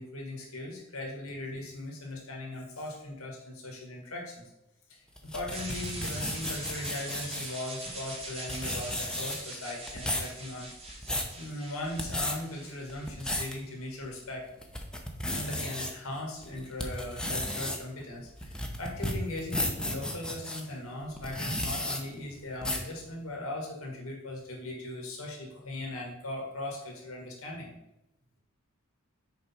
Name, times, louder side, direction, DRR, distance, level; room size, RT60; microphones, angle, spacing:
voice 1, 0.0-4.4 4.9-5.0 5.3-10.7 11.4-14.4 15.3-27.7, left 1 dB, 90° left, -1 dB, 1.8 m, -39 dB
sound 1, 5.2-7.6 8.2-8.3 8.5-9.5 9.9-10.3 10.8-11.3 11.8-12.3 12.9-13.5 14.0-14.1 14.6-15.9 16.4-20.6 21.2-22.0 22.6-22.9, left 1 dB, 5° left, 0.7 m, -33 dB
sound 2, 5.5-13.5, right 2 dB, 30° right, 1.7 m, -43 dB
6.5 x 4.7 x 4.3 m, 0.89 s
head